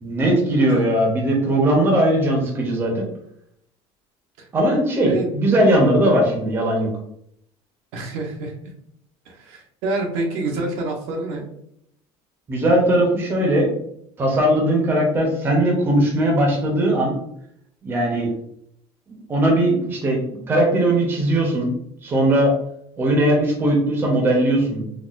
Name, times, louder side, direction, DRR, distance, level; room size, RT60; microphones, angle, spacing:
voice 1, 0.0-3.1 4.5-6.9 12.5-13.7 14.2-17.2 17.8-18.3 19.3-20.2 20.5-21.7 22.0-22.5 23.0-24.9, right 1 dB, 20° right, -1 dB, 0.7 m, -19 dB
voice 2, 7.9-8.5 9.3-11.4, right 2 dB, 65° right, 1 dB, 0.7 m, -27 dB
4.0 x 2.4 x 2.4 m, 0.73 s
cardioid pair, 170°, 11 cm